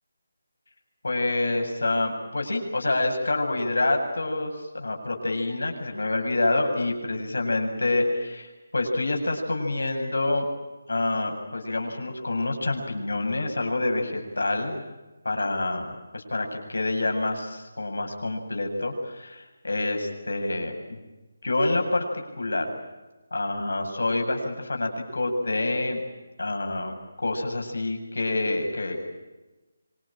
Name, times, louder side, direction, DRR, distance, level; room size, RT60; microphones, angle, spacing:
voice 1, 1.0-10.5 10.9-14.8 15.2-21.0 21.4-22.0 22.4-22.7 23.3-26.0 26.4-29.0, left 2 dB, 85° left, 3 dB, 7.9 m, -27 dB
26.5 x 22.5 x 9.0 m, 1.1 s
figure-of-eight pair, 165°, 0 cm